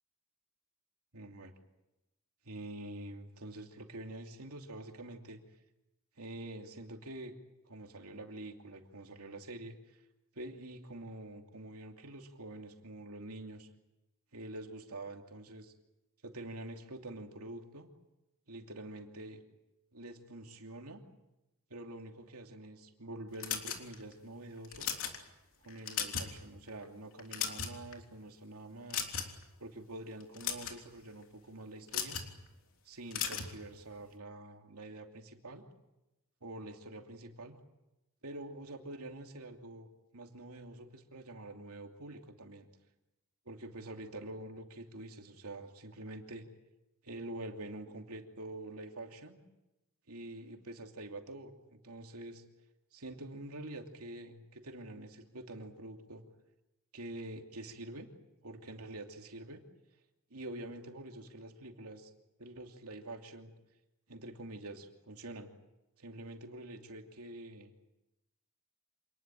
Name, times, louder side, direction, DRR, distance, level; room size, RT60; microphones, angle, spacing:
voice 1, 1.1-1.5 2.4-5.4 6.2-7.3 7.7-10.0 10.3-13.7 14.3-15.7 16.2-17.9 18.5-19.4 19.9-21.0 21.7-24.9 25.6-29.1 29.6-32.2 32.8-35.6 36.4-37.6 38.2-42.7 43.4-46.5 47.0-49.4 50.1-52.4 52.9-56.2 56.9-58.1 58.4-59.6 60.3-62.1 62.4-63.5 64.1-65.5 66.0-67.7, right 1 dB, 75° right, 3 dB, 2.9 m, -46 dB
sound 1, 23.4-24.1 24.6-25.2 25.7-26.4 26.7-26.8 27.2-27.9 28.9-29.4 30.2-30.8 31.9-32.3 33.1-33.5, left 8 dB, 65° left, 3.3 m, -36 dB
27.0 x 20.0 x 9.1 m, 0.97 s
head